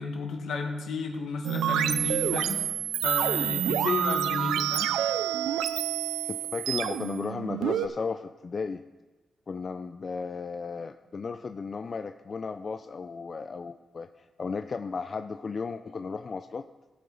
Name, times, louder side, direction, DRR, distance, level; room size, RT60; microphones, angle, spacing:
voice 1, 0.0-2.6 3.0-4.9, left 4 dB, 80° left, 2 dB, 1.6 m, -32 dB
sound 1, 1.4-7.9, right 10 dB, 85° right, 0.4 m, -28 dB
voice 2, 6.2-8.8 9.5-16.7, left 5 dB, 50° left, 9 dB, 0.4 m, -35 dB
16.5 x 5.5 x 4.0 m, 1.2 s
supercardioid pair, 50°, 0 cm